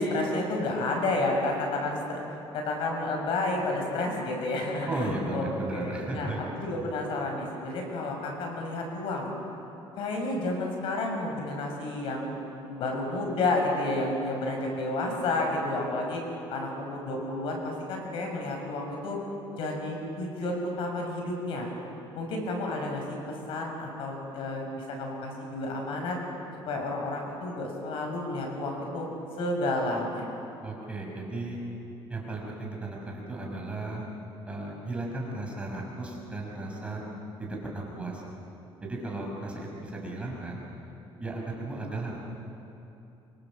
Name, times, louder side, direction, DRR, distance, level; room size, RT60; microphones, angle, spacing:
voice 1, 0.0-2.2 2.5-9.3 10.0-12.3 12.6-16.2 16.5-19.2 19.6-21.7 22.1-26.2 26.7-29.1 29.4-30.3, left 2 dB, 65° left, 1 dB, 6.3 m, -31 dB
voice 2, 4.9-6.5 30.6-31.6 32.1-34.1 34.5-37.0 37.4-38.2 38.8-40.6 41.2-42.2, right 2 dB, 10° right, -2 dB, 5.5 m, -35 dB
26.5 x 25.0 x 7.7 m, 2.9 s
cardioid pair, 155°, 10 cm